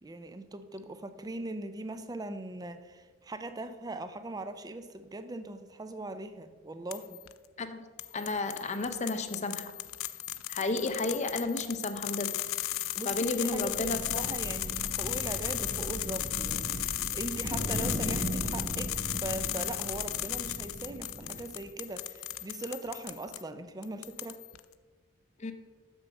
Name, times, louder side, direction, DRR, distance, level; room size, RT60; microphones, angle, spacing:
voice 1, 0.0-7.2 12.9-24.4, right 2 dB, 20° right, 10 dB, 0.4 m, -40 dB
sound 1, 6.9-7.3 8.0-23.4 23.8-24.6, left 15 dB, 75° left, 0.4 m, -35 dB
voice 2, 8.1-9.7 10.5-12.3 13.0-14.2 25.4-25.5, left 3 dB, 35° left, 9 dB, 0.6 m, -32 dB
sound 2, 13.3-21.7, right 1 dB, 40° right, 1.6 m, -38 dB
6.9 x 6.2 x 5.2 m, 1.4 s
head